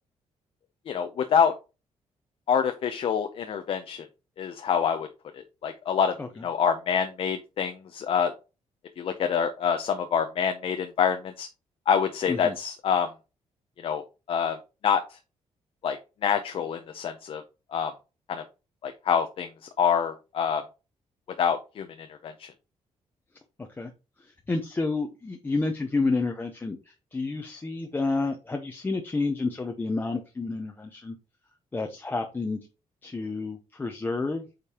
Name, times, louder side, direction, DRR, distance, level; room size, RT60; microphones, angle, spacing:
voice 1, 0.9-1.5 2.5-4.1 4.4-5.1 5.3-6.2 6.4-8.3 9.0-11.5 11.9-13.1 13.8-14.0 14.3-14.6 14.8-15.2 15.8-17.4 17.7-17.9 18.3-18.4 18.8-19.5 19.8-20.6 21.4-22.5, left 7 dB, 55° left, 7 dB, 0.6 m, -26 dB
voice 2, 23.6-23.9 24.2-31.2 31.7-32.6 33.0-34.4, left 3 dB, 20° left, 4 dB, 0.7 m, -30 dB
8.4 x 5.1 x 2.9 m, 0.31 s
cardioid pair, 150°, 11 cm